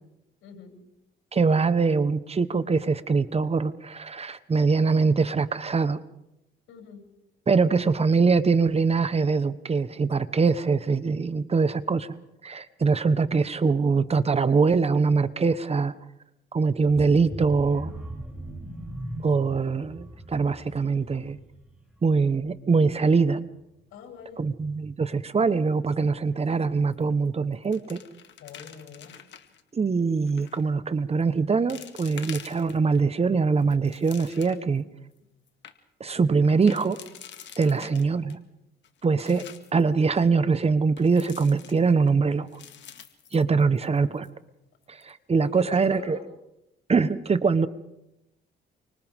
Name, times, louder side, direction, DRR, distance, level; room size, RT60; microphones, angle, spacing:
voice 1, 0.4-0.7 6.7-7.1 23.9-24.4 28.4-29.2 37.7-38.0 45.4-46.3, left 6 dB, 85° left, 2 dB, 7.5 m, -43 dB
voice 2, 1.3-6.0 7.5-12.2 12.4-15.9 16.5-17.9 19.2-21.4 22.0-23.4 24.4-28.0 29.7-34.8 36.0-37.0 37.6-38.4 39.0-39.4 39.7-42.5 43.3-44.3 44.9-46.2 46.9-47.7, right 4 dB, 30° right, 13 dB, 1.2 m, -23 dB
sound 1, 16.8-22.6 22.9-23.2 23.5-23.6, equal, 5° right, 7.5 m, -40 dB
sound 2, 26.9-27.3 27.5-29.6 30.3-30.6 31.2-31.3 31.7-33.0 33.5-34.8 35.2-35.3 35.5-35.7 36.4-38.4 38.8-39.8 41.0-42.1 42.5-44.0 44.2-44.3 44.8-45.1, left 9 dB, 65° left, 1.9 m, -46 dB
29.0 x 25.5 x 3.7 m, 0.87 s
cardioid pair, 90°, 20 cm